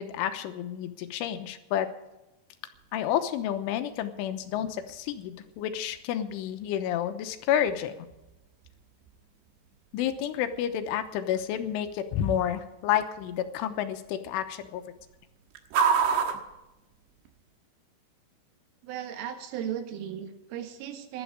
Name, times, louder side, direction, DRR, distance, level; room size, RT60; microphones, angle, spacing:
voice 1, 0.0-1.9 2.9-8.1 9.9-14.8, left 10 dB, 85° left, 8 dB, 3.4 m, -30 dB
sound 1, 2.7-17.6, right 6 dB, 70° right, 3.2 m, -36 dB
voice 2, 18.8-21.2, right 9 dB, 90° right, 6 dB, 4.2 m, -36 dB
17.5 x 12.0 x 4.8 m, 0.96 s
omnidirectional pair, 5.6 m